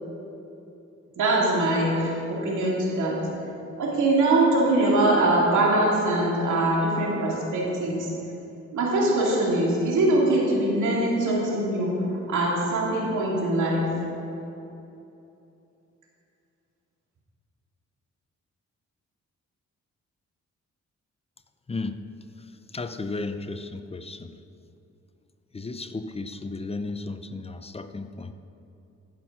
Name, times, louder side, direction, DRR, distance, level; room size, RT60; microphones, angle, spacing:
voice 1, 1.2-3.2 3.8-8.1 8.7-11.9 12.3-13.8, right 2 dB, 85° right, -4 dB, 2.3 m, -23 dB
voice 2, 21.7-22.0 22.7-24.4 25.5-28.3, left 3 dB, 20° left, 10 dB, 0.6 m, -34 dB
14.5 x 6.3 x 5.9 m, 2.8 s
cardioid pair, 85°, 29 cm